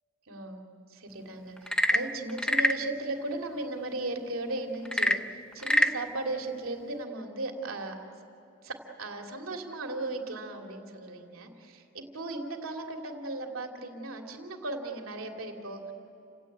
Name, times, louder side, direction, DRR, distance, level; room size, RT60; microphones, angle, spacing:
voice 1, 0.3-0.6 0.9-8.0 8.6-15.9, right 2 dB, 85° right, 3 dB, 2.9 m, -36 dB
Frog / Percussion / Wood, 1.6-2.9 4.8-6.0, left 1 dB, 5° left, 0.5 m, -25 dB
29.0 x 17.5 x 9.4 m, 3.0 s
head